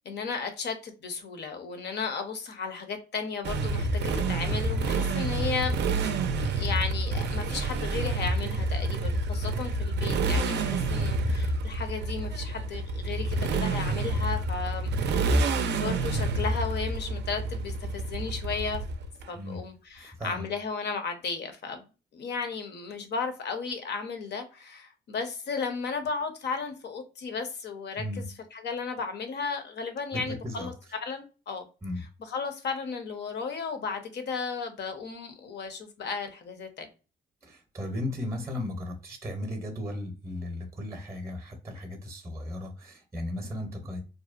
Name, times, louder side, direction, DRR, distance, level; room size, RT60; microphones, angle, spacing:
voice 1, 0.0-5.8 6.4-15.4 15.7-18.8 19.3-21.8 22.1-28.0 28.5-30.7 31.0-31.7 32.3-36.9, left 5 dB, 60° left, 0.7 m, -34 dB
Motorcycle, 3.4-19.2, right 2 dB, 60° right, 0.4 m, -28 dB
voice 2, 20.0-20.5 28.0-28.3 30.1-30.7 31.8-32.0 37.4-44.0, left 1 dB, 15° right, 0.7 m, -36 dB
2.7 x 2.0 x 2.3 m
cardioid pair, 90°, 20 cm